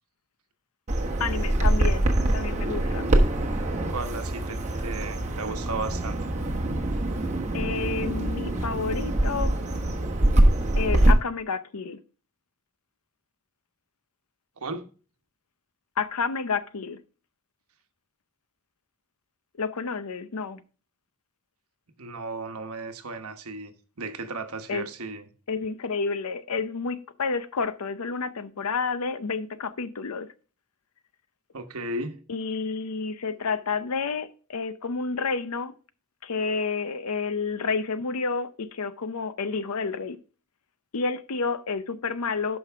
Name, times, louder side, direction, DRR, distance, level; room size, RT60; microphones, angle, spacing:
Bird vocalization bird call bird song, 0.9-11.1, right 1 dB, 30° right, 1.2 m, -24 dB
voice 1, 1.2-3.1 7.5-9.6 10.8-12.0 16.0-17.0 19.6-20.6 24.7-24.9 25.5-30.3 32.3-35.7 36.2-40.2 40.9-42.6, left 4 dB, 80° left, 0.7 m, -30 dB
voice 2, 3.9-6.2 14.6-14.9 22.0-25.3 31.5-32.2, right 3 dB, 75° right, 1.1 m, -35 dB
11.5 x 5.4 x 3.5 m
head